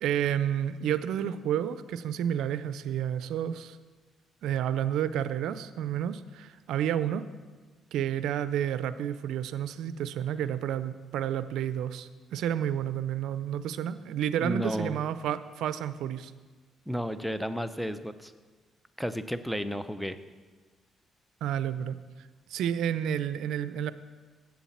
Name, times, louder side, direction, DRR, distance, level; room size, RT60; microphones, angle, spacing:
voice 1, 0.0-3.8 4.4-7.2 7.9-16.3 21.4-23.9, right 10 dB, 85° right, 14 dB, 0.4 m, -30 dB
voice 2, 14.4-15.0 16.9-18.3 19.0-20.2, equal, ahead, 12 dB, 0.6 m, -32 dB
7.9 x 7.2 x 7.2 m, 1.4 s
cardioid pair, 90°, 0 cm